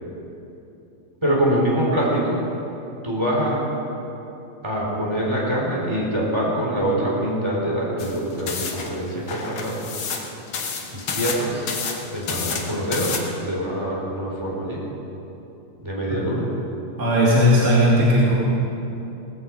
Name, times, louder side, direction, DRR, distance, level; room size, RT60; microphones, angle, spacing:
voice 1, 1.2-2.4 3.0-3.6 4.6-9.8 10.9-11.6 12.1-13.2 13.4-14.8 15.8-16.5, right 1 dB, 10° right, -4 dB, 3.5 m, -24 dB
sound 1, 8.0-13.2, left 5 dB, 55° left, 1.5 m, -30 dB
voice 2, 17.0-18.3, equal, 25° right, -6 dB, 2.1 m, -16 dB
18.5 x 15.5 x 4.8 m, 2.9 s
omnidirectional pair, 4.1 m